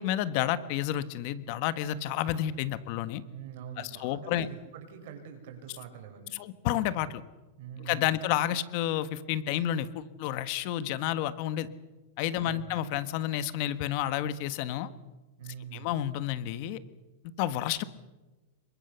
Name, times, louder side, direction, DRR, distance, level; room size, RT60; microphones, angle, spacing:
voice 1, 0.0-3.2 3.8-4.5 6.3-7.2 7.8-11.7 12.2-14.9 15.7-16.8 17.4-17.8, left 12 dB, 45° left, 14 dB, 1.4 m, -30 dB
voice 2, 3.2-6.3 7.6-8.1 12.3-12.8 15.4-15.9, right 8 dB, 60° right, 5 dB, 6.5 m, -44 dB
27.5 x 23.5 x 7.0 m, 1.1 s
supercardioid pair, 150°, 0 cm